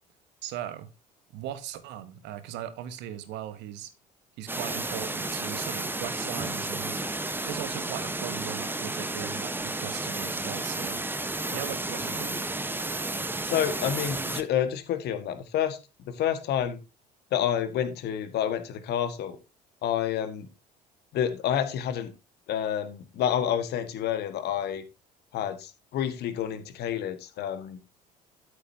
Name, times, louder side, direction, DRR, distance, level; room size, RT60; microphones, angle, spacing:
voice 1, 0.4-0.9 1.3-3.9 4.4-7.0 7.4-11.0 11.5-12.4, right 11 dB, 55° right, 1.5 m, -38 dB
sound 1, 4.5-14.4, right 2 dB, 10° right, 1.2 m, -32 dB
voice 2, 13.4-15.8 16.1-16.8 17.3-19.4 19.8-20.5 21.1-22.1 22.5-24.8 25.3-27.8, left 9 dB, 50° left, 1.8 m, -29 dB
13.0 x 8.2 x 2.9 m
figure-of-eight pair, 60°, 21 cm